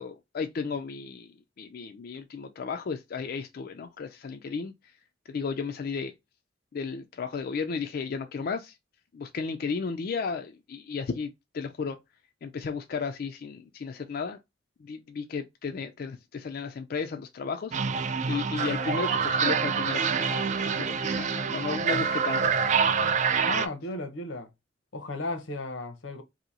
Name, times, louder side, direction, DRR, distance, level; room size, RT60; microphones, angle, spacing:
voice 1, 0.0-4.9 5.3-6.1 6.7-8.8 9.1-12.0 12.4-14.4 14.8-22.7, left 5 dB, 55° left, 0.4 m, -34 dB
sound 1, 17.7-23.7, right 6 dB, 40° right, 0.4 m, -26 dB
voice 2, 23.5-24.5 24.9-26.2, left 2 dB, 85° left, 0.8 m, -34 dB
2.8 x 2.6 x 3.9 m
head